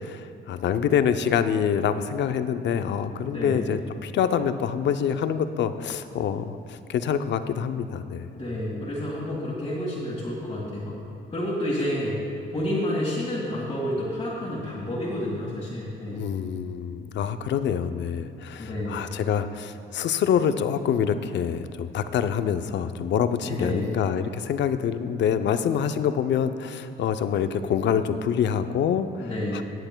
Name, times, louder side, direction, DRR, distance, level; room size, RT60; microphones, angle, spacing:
voice 1, 0.0-8.3 16.1-29.6, left 8 dB, 65° left, 10 dB, 0.5 m, -26 dB
voice 2, 3.1-3.7 8.3-11.0 11.3-12.2 12.5-16.3 18.6-19.1 23.4-23.9 29.2-29.6, left 1 dB, 25° left, -8 dB, 1.8 m, -30 dB
19.5 x 7.8 x 2.2 m, 2.4 s
cardioid pair, 90°, 20 cm